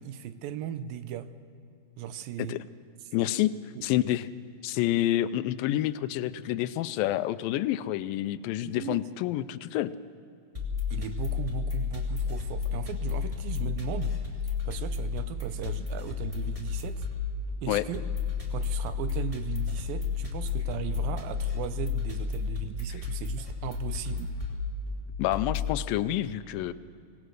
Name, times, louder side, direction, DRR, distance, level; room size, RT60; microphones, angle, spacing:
voice 1, 0.0-1.3 2.0-2.6 3.8-3.9 8.6-9.1 10.9-14.2 14.4-17.1 17.6-18.1 18.5-24.3, right 10 dB, 85° right, 12 dB, 2.6 m, -37 dB
voice 2, 3.1-3.5 3.8-4.3 4.6-9.9 17.7-17.8 25.2-26.7, left 14 dB, 85° left, 14 dB, 2.3 m, -28 dB
sound 1, 10.5-25.8, left 6 dB, 10° right, 2.0 m, -32 dB
25.0 x 18.0 x 6.4 m, 2.4 s
omnidirectional pair, 4.0 m